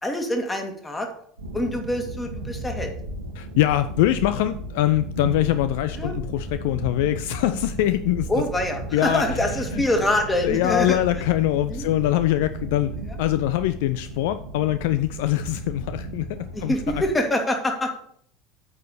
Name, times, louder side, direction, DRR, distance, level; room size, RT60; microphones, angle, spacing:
voice 1, 0.0-1.1 1.5-2.9 6.0-6.2 8.3-11.0 11.7-11.9 16.5-17.9, left 1 dB, 15° left, 4 dB, 2.1 m, -25 dB
sound 1, 1.4-17.1, right 2 dB, 85° right, 1.5 m, -34 dB
voice 2, 3.4-8.3 8.9-9.2 9.7-9.8 10.4-12.9 13.2-17.0, left 14 dB, 65° left, 12 dB, 0.4 m, -23 dB
8.6 x 4.8 x 6.6 m, 0.63 s
figure-of-eight pair, 70°, 0 cm